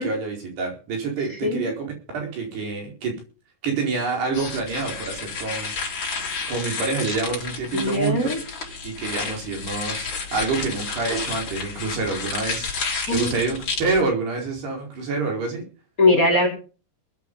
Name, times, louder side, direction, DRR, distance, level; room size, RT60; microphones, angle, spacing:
voice 1, 0.0-3.2 3.6-5.7 6.5-8.3 8.8-15.6, right 4 dB, 70° right, 1 dB, 6.7 m, -27 dB
voice 2, 1.4-1.7 7.7-8.4 13.1-13.4 16.0-16.5, left 2 dB, 20° left, 2 dB, 4.8 m, -20 dB
sound 1, 4.3-14.0, left 5 dB, 45° left, 5.1 m, -31 dB
21.5 x 9.5 x 5.5 m, 0.37 s
omnidirectional pair, 4.8 m